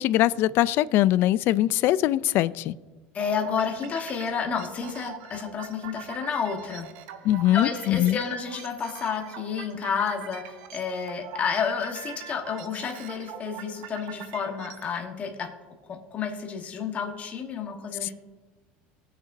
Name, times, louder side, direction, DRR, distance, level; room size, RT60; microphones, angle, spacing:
voice 1, 0.0-2.7 7.2-8.2, left 14 dB, 50° left, 18 dB, 0.3 m, -22 dB
voice 2, 3.1-6.9 7.5-15.5 15.9-18.1, left 6 dB, 30° left, 3 dB, 1.2 m, -30 dB
sound 1, 3.2-15.0, right 10 dB, 75° right, 0.8 m, -43 dB
18.5 x 6.6 x 2.6 m, 1.3 s
supercardioid pair, 135°, 5 cm